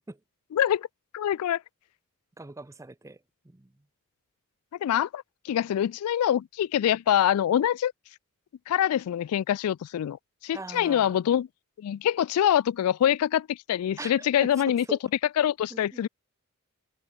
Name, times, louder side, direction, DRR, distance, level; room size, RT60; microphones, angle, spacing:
voice 1, 0.5-0.9 1.1-1.6 4.8-7.9 8.7-10.2 10.4-11.5 11.8-14.9 15.4-16.1, left 10 dB, 70° left, 0.3 m, -25 dB
voice 2, 2.4-3.2 3.4-3.7 10.5-11.2 14.0-14.5 14.9-15.0 15.7-16.1, right 2 dB, 15° right, 0.6 m, -41 dB
head